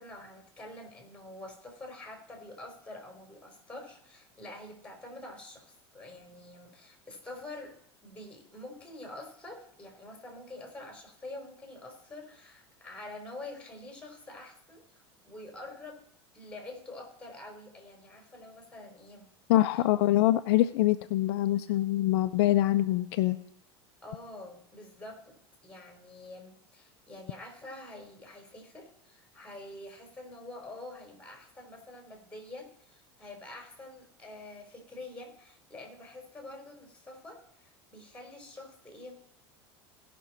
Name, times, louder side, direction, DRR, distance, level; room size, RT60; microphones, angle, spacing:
voice 1, 0.0-16.0 16.3-19.3 19.7-19.8 24.0-39.2, left 2 dB, 10° left, 2 dB, 4.0 m, -46 dB
voice 2, 19.5-23.4, left 15 dB, 65° left, 10 dB, 0.5 m, -24 dB
17.5 x 6.1 x 4.3 m, 0.70 s
hypercardioid pair, 90°, 14 cm